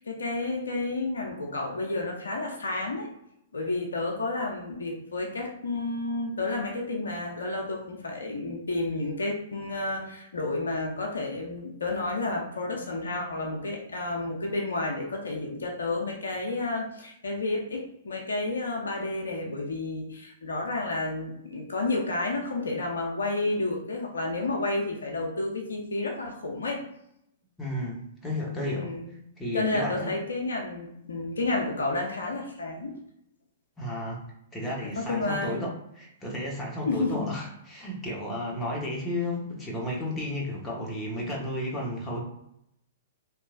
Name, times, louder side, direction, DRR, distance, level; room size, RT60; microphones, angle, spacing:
voice 1, 0.0-3.1 3.5-26.8 28.7-29.1 29.5-32.9 35.0-35.6 36.8-37.3, left 2 dB, 70° left, 0 dB, 0.5 m, -31 dB
voice 2, 27.6-28.9 29.4-30.2 33.8-34.2 34.5-35.7 36.0-42.2, left 1 dB, 15° left, -3 dB, 0.8 m, -33 dB
2.8 x 2.3 x 2.4 m, 0.76 s
figure-of-eight pair, 110°, 0 cm